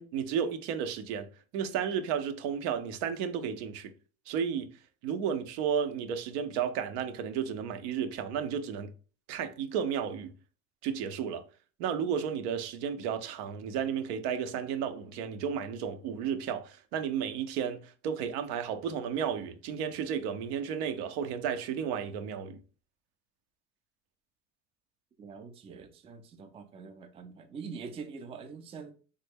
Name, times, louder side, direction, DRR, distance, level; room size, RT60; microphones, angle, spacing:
voice 1, 0.0-3.9 4.3-4.7 5.0-8.9 9.3-10.3 10.8-11.4 11.8-22.6, right 7 dB, 80° right, 0.6 m, -33 dB
voice 2, 25.2-28.9, right 5 dB, 20° right, 0.3 m, -44 dB
3.2 x 2.1 x 3.4 m
supercardioid pair, 110°, 32 cm